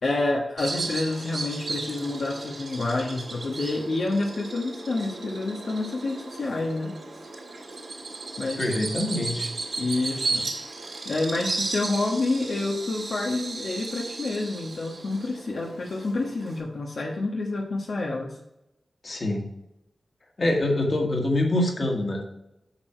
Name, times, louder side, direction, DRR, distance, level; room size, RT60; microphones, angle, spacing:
voice 1, 0.0-6.9 8.4-8.6 9.8-10.5 11.0-18.4, left 2 dB, 70° left, -1 dB, 1.3 m, -28 dB
Bird vocalization bird call bird song, 0.6-16.6, right 3 dB, 70° right, 3.0 m, -35 dB
voice 2, 8.6-9.5 19.0-19.5 20.4-22.2, left 1 dB, 45° left, 1 dB, 1.9 m, -25 dB
8.7 x 6.4 x 4.5 m, 0.86 s
wide cardioid pair, 130°, 0 cm